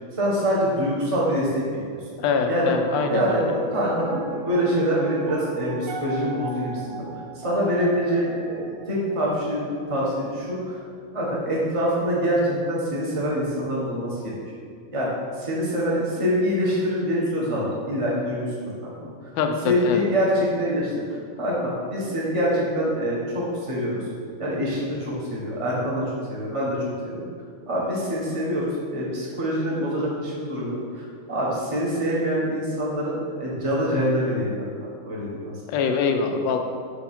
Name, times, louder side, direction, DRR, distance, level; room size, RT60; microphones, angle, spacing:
voice 1, 0.2-1.6 2.5-2.7 3.1-7.0 7.3-10.8 11.1-14.4 14.9-15.1 15.4-18.5 18.8-18.9 19.6-21.0 21.4-24.0 24.4-26.0 26.3-26.8 27.0-27.2 27.7-34.7 35.0-35.5, equal, 20° right, -5 dB, 1.0 m, -25 dB
voice 2, 2.2-3.4 19.3-20.0 35.7-36.6, left 5 dB, 75° left, 5 dB, 1.3 m, -24 dB
Piano, 2.2-12.5, right 2 dB, 70° right, 1.2 m, -37 dB
6.3 x 4.7 x 4.3 m, 2.1 s
omnidirectional pair, 2.2 m